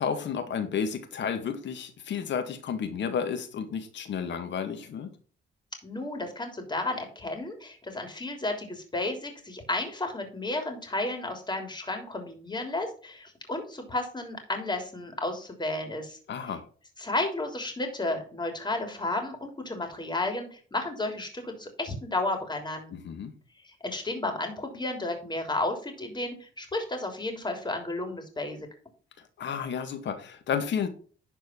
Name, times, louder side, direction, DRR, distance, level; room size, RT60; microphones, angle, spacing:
voice 1, 0.0-5.1 16.3-16.6 22.9-23.3 29.4-30.9, left 7 dB, 65° left, 8 dB, 1.8 m, -32 dB
voice 2, 5.8-16.2 17.0-23.0 23.6-28.7, left 2 dB, 20° left, 4 dB, 3.3 m, -32 dB
11.5 x 4.6 x 4.5 m, 0.41 s
cardioid pair, 90°, 20 cm